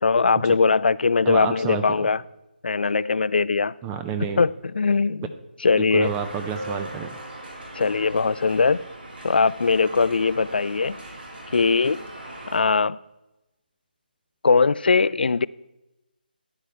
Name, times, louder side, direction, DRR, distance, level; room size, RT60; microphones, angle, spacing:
voice 1, 0.0-2.2 2.6-3.7 4.4-5.3 5.6-6.1 7.8-8.8 9.2-11.0 11.5-12.0 12.5-13.0 14.4-15.5, left 4 dB, 70° left, 0.4 m, -20 dB
voice 2, 1.2-2.1 3.8-4.4 5.8-7.2, right 7 dB, 10° right, 0.3 m, -29 dB
sound 1, 2.8-4.0 6.6-7.8, right 1 dB, 45° right, 2.6 m, -42 dB
sound 2, 6.0-12.6, right 1 dB, 85° right, 4.2 m, -40 dB
14.5 x 9.8 x 3.2 m
figure-of-eight pair, 165°, 5 cm